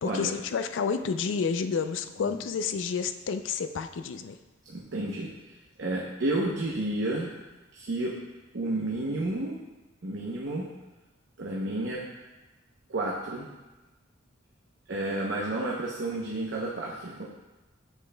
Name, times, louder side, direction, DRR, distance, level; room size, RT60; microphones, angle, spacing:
voice 1, 0.0-4.4, left 5 dB, 85° left, 9 dB, 0.4 m, -30 dB
voice 2, 4.7-5.3 5.8-7.3 7.7-8.1 8.5-9.6 10.0-10.7 11.4-12.0 12.9-13.5 14.9-17.3, right 2 dB, 75° right, -3 dB, 0.8 m, -31 dB
8.1 x 6.2 x 2.2 m, 1.1 s
head